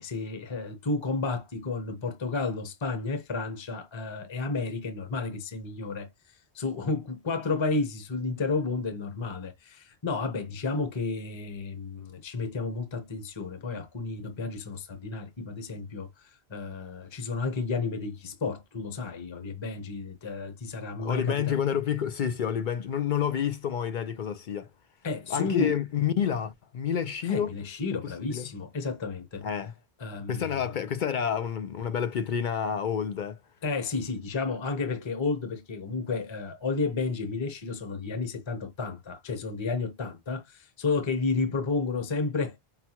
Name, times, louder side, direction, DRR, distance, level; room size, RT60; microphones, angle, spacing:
voice 1, 0.0-6.1 6.5-21.6 25.0-25.8 27.2-29.4 30.0-30.6 33.6-42.6, left 4 dB, 30° left, 0.8 m, -32 dB
voice 2, 21.0-24.7 25.3-27.5 28.0-28.5 29.4-29.7 30.3-33.4, left 8 dB, 60° left, 0.6 m, -29 dB
5.6 x 2.2 x 2.9 m
omnidirectional pair, 1.1 m